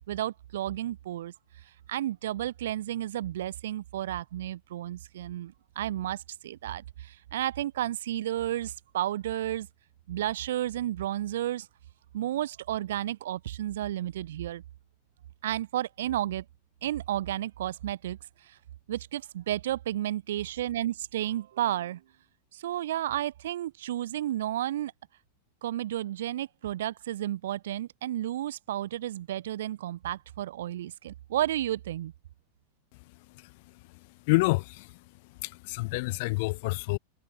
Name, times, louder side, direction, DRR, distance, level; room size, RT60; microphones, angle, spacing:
voice 1, 0.1-1.3 1.9-9.7 10.1-11.7 12.1-14.6 15.4-16.4 16.8-18.2 18.5-18.6 18.9-22.0 22.5-24.9 25.6-32.1, right 12 dB, 60° right, 1.0 m, -32 dB
voice 2, 34.3-34.9 35.4-37.0, left 25 dB, 50° left, 1.1 m, -27 dB
figure-of-eight pair, 90°, 0 cm